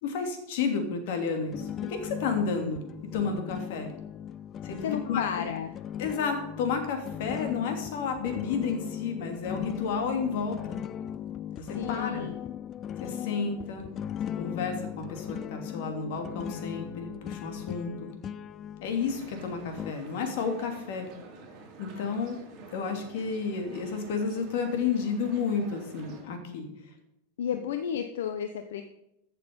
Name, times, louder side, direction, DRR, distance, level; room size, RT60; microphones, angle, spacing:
voice 1, 0.0-2.8 3.1-3.9 4.6-5.2 6.0-10.8 11.5-12.3 13.0-13.9 14.4-18.1 18.8-21.1 21.8-22.4 22.7-26.7, left 5 dB, 60° left, 5 dB, 2.7 m, -31 dB
sound 1, 1.5-19.9, left 9 dB, 30° left, 0.4 m, -38 dB
voice 2, 4.8-5.7 11.7-12.4 27.4-28.8, left 8 dB, 85° left, 7 dB, 0.9 m, -32 dB
sound 2, 19.0-26.2, right 3 dB, 35° right, 3.5 m, -48 dB
15.0 x 6.7 x 5.3 m, 0.84 s
supercardioid pair, 140°, 0 cm